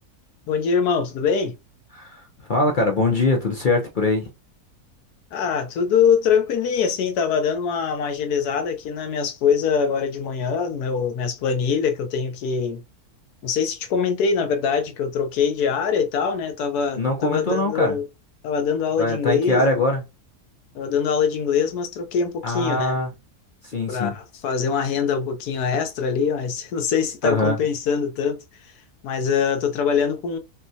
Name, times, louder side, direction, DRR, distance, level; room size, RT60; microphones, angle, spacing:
voice 1, 0.5-1.6 5.3-12.8 13.4-18.1 18.4-19.8 20.7-23.0 23.9-28.4 29.0-30.4, left 6 dB, 90° left, 1.3 m, -23 dB
voice 2, 2.5-4.3 17.0-18.0 19.0-20.0 22.4-23.1 23.6-24.1 27.2-27.6, left 2 dB, 50° left, 0.6 m, -22 dB
5.9 x 2.2 x 2.7 m
omnidirectional pair, 1.6 m